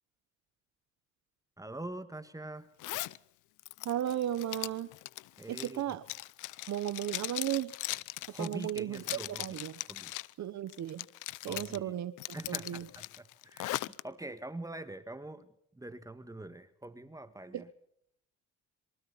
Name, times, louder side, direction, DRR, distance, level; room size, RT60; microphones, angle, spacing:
voice 1, 1.6-2.7 5.4-6.0 8.3-9.6 9.9-10.1 11.5-11.9 12.3-13.7 14.0-17.7, right 2 dB, 10° right, 11 dB, 1.8 m, -44 dB
Zipper (clothing), 2.8-3.2 3.6-10.3 10.7-11.8 12.2-14.0, left 17 dB, 90° left, 0.7 m, -39 dB
voice 2, 3.8-4.9 5.5-6.0 6.7-7.7 8.4-9.8 10.4-11.1 11.4-12.1 12.5-12.9 17.5-17.6, right 11 dB, 65° right, 14 dB, 1.1 m, -35 dB
26.5 x 24.0 x 4.2 m, 0.70 s
cardioid pair, 90°, 30 cm